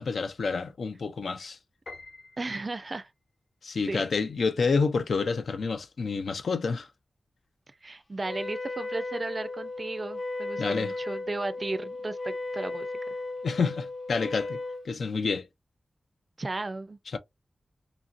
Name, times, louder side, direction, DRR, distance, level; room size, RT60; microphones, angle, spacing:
voice 1, 0.0-1.6 3.6-6.9 10.6-10.9 13.4-14.6 14.8-15.5 17.1-17.2, left 4 dB, 80° left, 0.4 m, -28 dB
Piano, 1.9-3.2, left 3 dB, 60° left, 0.9 m, -47 dB
voice 2, 2.4-3.1 3.9-4.0 7.8-12.9 16.4-17.0, right 2 dB, 40° right, 0.4 m, -34 dB
Wind instrument woodwind instrument, 8.2-14.9, left 2 dB, 30° left, 0.5 m, -35 dB
2.9 x 2.5 x 2.5 m
wide cardioid pair, 105°, 0 cm